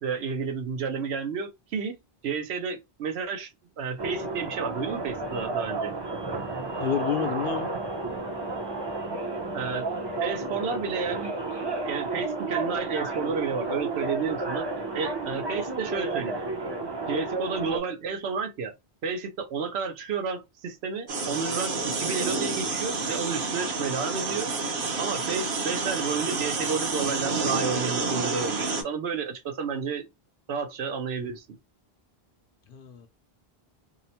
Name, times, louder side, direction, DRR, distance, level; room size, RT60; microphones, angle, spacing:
voice 1, 0.0-2.0 2.2-3.5 3.8-5.9 9.5-9.9 10.2-11.3 11.9-14.7 14.9-16.4 17.1-18.7 19.0-24.5 25.0-30.1 30.5-31.4, right 5 dB, 85° right, 1.0 m, -31 dB
sound 1, 4.0-17.8, right 3 dB, 30° right, 0.5 m, -32 dB
voice 2, 6.8-7.7 32.7-33.1, left 8 dB, 65° left, 0.7 m, -29 dB
sound 2, 21.1-28.8, right 3 dB, 60° right, 0.9 m, -29 dB
2.9 x 2.0 x 2.7 m
omnidirectional pair, 1.0 m